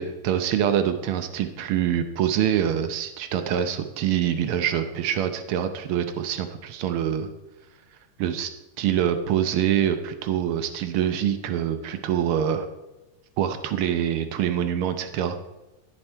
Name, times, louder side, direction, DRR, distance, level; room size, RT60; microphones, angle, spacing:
voice 1, 0.0-7.3 8.2-8.5 8.8-12.7 13.4-15.4, right 9 dB, 80° right, 8 dB, 1.2 m, -25 dB
16.0 x 8.2 x 4.5 m, 1.0 s
omnidirectional pair, 3.5 m